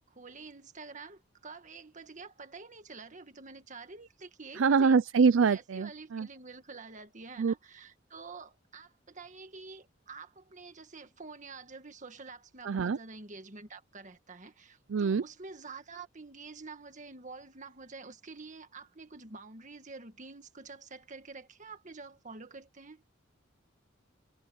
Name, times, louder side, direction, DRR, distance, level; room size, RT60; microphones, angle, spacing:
voice 1, 0.2-5.0 5.5-23.0, right 4 dB, 40° right, 1.8 m, -48 dB
voice 2, 4.6-6.3 7.4-7.5 12.6-13.0 14.9-15.2, right 5 dB, 75° right, 0.4 m, -25 dB
head